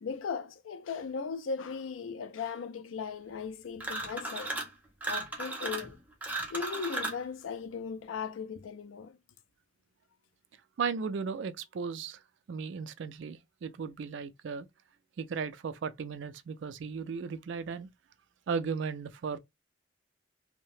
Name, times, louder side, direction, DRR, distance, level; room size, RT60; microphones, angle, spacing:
voice 1, 0.0-4.5 5.1-6.0 6.5-9.2, left 5 dB, 80° left, 0.4 m, -37 dB
sound 1, 3.8-4.7 5.0-7.2, right 2 dB, 10° right, 0.6 m, -36 dB
voice 2, 10.8-12.2 12.5-14.7 15.2-17.9 18.5-19.4, right 5 dB, 65° right, 0.3 m, -36 dB
2.7 x 2.1 x 3.0 m
head